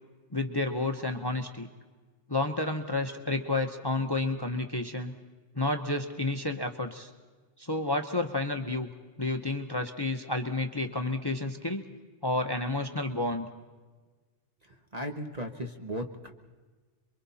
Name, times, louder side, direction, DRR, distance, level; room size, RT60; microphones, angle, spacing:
voice 1, 0.3-1.7 2.3-5.1 5.5-7.1 7.6-8.9 9.2-11.9 12.2-13.5, left 2 dB, 20° left, 5 dB, 1.0 m, -30 dB
voice 2, 14.6-16.3, equal, 35° right, 3 dB, 1.2 m, -37 dB
28.0 x 23.5 x 4.2 m, 1.4 s
omnidirectional pair, 1.2 m